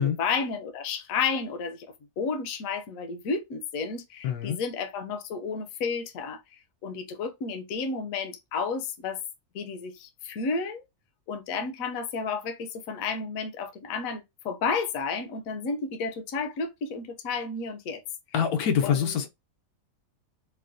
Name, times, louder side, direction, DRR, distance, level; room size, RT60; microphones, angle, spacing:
voice 1, 0.0-1.9 2.2-6.4 6.8-9.2 9.5-10.8 11.3-18.0 18.8-19.3, left 5 dB, 70° left, 1.0 m, -32 dB
voice 2, 4.2-4.6 18.3-19.3, left 8 dB, 90° left, 1.2 m, -25 dB
4.7 x 2.1 x 2.5 m
omnidirectional pair, 1.6 m